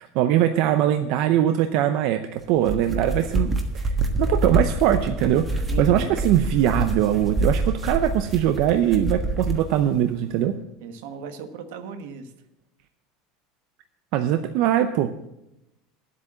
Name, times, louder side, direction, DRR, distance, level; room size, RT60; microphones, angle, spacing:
voice 1, 0.0-10.5 14.1-15.4, right 11 dB, 60° right, 8 dB, 0.6 m, -22 dB
sound 1, 2.5-9.7, right 2 dB, 15° right, 1.4 m, -26 dB
voice 2, 5.7-6.1 10.8-12.3, right 5 dB, 85° right, 8 dB, 1.3 m, -36 dB
9.9 x 8.3 x 7.5 m, 0.88 s
cardioid pair, 155°, 0 cm